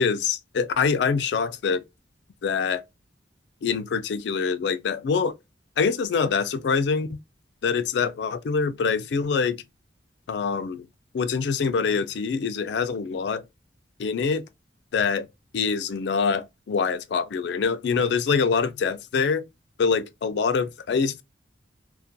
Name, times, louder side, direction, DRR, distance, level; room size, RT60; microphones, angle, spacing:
voice 1, 0.0-1.8 2.4-2.8 3.6-5.4 5.8-7.2 7.6-9.6 10.3-10.9 11.1-13.4 14.0-14.4 14.9-15.3 15.5-19.4 19.8-21.2, left 5 dB, 65° left, 0.3 m, -25 dB
2.3 x 2.1 x 2.6 m
head